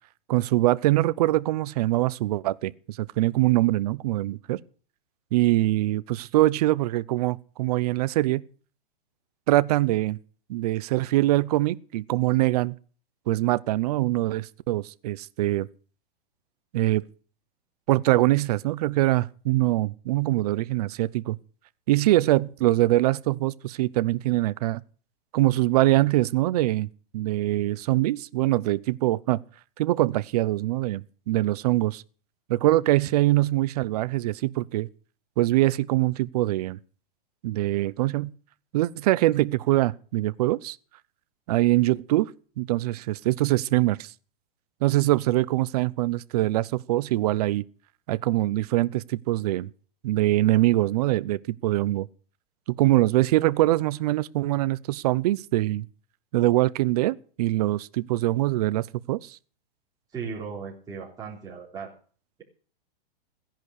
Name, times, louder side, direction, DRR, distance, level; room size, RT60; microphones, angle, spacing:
voice 1, 0.3-4.6 5.3-8.4 9.5-10.2 10.5-12.7 13.3-15.7 16.7-17.0 17.9-21.4 21.9-24.8 25.3-29.4 29.8-32.0 32.5-34.9 35.4-36.8 37.4-38.3 38.7-40.8 41.5-42.3 42.6-44.1 44.8-47.6 48.1-49.7 50.0-52.1 52.8-55.9 56.3-59.4, right 17 dB, 40° right, 0.7 m, -23 dB
voice 2, 60.1-61.9, right 6 dB, 15° right, 3.9 m, -36 dB
16.0 x 10.5 x 6.5 m
hypercardioid pair, 155°, 29 cm